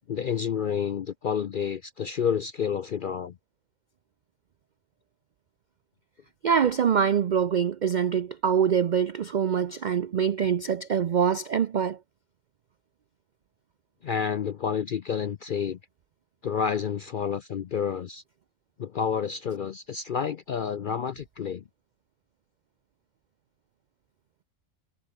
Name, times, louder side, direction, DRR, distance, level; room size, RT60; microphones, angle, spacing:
voice 1, 0.1-3.4 14.0-15.8 16.4-18.2 18.8-21.6, left 7 dB, 60° left, 0.5 m, -29 dB
voice 2, 6.4-12.0, right 7 dB, 70° right, 0.4 m, -24 dB
omnidirectional pair, 1.5 m